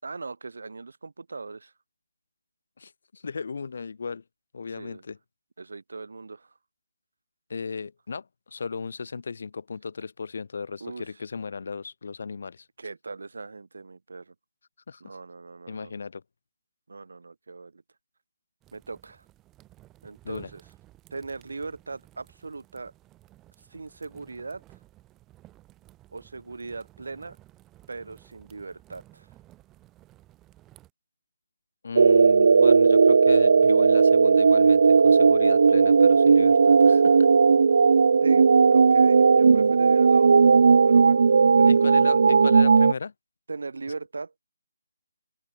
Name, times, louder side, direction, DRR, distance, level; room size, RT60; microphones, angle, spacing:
voice 1, 0.0-1.7 4.7-5.0 5.6-6.5 10.8-11.0 12.8-14.3 15.0-15.9 16.9-17.8 18.7-19.2 20.0-20.6 21.1-22.9 23.7-24.6 26.1-27.4 27.9-29.3 38.2-40.5 40.8-42.2 43.5-44.3, right 3 dB, 70° right, 6.4 m, -39 dB
voice 2, 2.8-4.2 4.5-5.2 7.5-12.7 14.9-15.2 15.7-16.2 20.2-20.5 31.8-37.3 41.7-43.1, left 5 dB, 50° left, 3.1 m, -36 dB
sound 1, 18.6-30.9, right 16 dB, 10° right, 4.7 m, -55 dB
sound 2, 32.0-42.9, right 5 dB, 50° right, 0.6 m, -17 dB
open air
hypercardioid pair, 175°, 0 cm